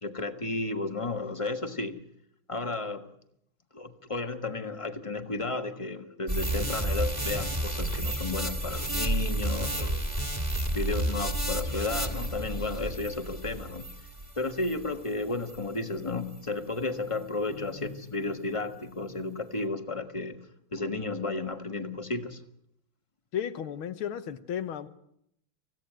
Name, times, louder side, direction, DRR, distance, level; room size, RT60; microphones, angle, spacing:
voice 1, 0.0-2.0 2.5-3.1 3.7-10.1 10.7-13.9 14.4-20.4 20.7-22.4, left 3 dB, 15° left, 7 dB, 1.3 m, -33 dB
sound 1, 6.3-14.9 15.4-15.6, right 1 dB, 20° right, 2.6 m, -31 dB
voice 2, 23.3-24.9, left 9 dB, 85° left, 12 dB, 2.0 m, -34 dB
25.5 x 16.0 x 9.2 m, 0.76 s
omnidirectional pair, 2.3 m